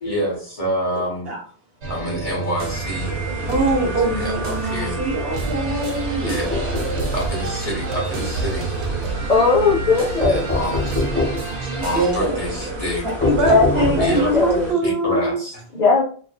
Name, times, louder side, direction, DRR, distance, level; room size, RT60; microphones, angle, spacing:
voice 1, 0.0-1.3 1.9-3.3 4.1-5.0 6.2-6.5 7.1-9.0 10.0-11.1 11.5-13.3 13.7-14.3 14.8-15.6, equal, 35° left, -3 dB, 1.1 m, -27 dB
sound 1, 1.8-12.1, right 3 dB, 90° right, 0.9 m, -29 dB
sound 2, 2.6-14.7, right 2 dB, 45° right, 1.0 m, -31 dB
voice 2, 3.5-7.1 11.8-12.4 13.2-15.4, right 1 dB, 65° right, -1 dB, 1.0 m, -23 dB
sound 3, 6.2-7.2 10.2-11.5 13.2-14.4, left 2 dB, 10° left, 1.0 m, -24 dB
voice 3, 9.3-10.4 13.5-14.7 15.7-16.0, left 4 dB, 50° left, -4 dB, 0.6 m, -18 dB
2.5 x 2.3 x 2.3 m, 0.43 s
omnidirectional pair, 1.1 m